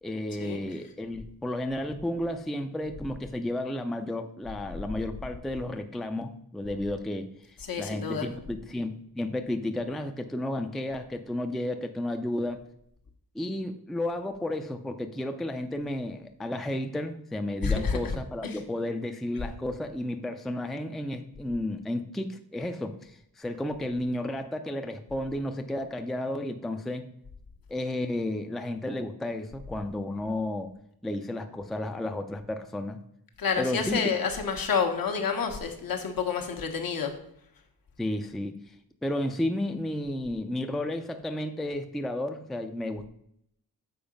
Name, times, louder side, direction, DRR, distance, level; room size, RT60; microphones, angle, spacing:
voice 1, 0.0-12.6 13.3-27.1 27.7-30.7 31.0-33.0 33.6-34.0 38.0-38.6 39.0-43.1, left 1 dB, ahead, 6 dB, 0.4 m, -32 dB
voice 2, 7.6-8.3 17.6-18.1 18.4-18.6 33.4-37.1, left 6 dB, 70° left, 4 dB, 1.2 m, -29 dB
7.0 x 4.8 x 5.2 m, 0.71 s
wide cardioid pair, 160°, 36 cm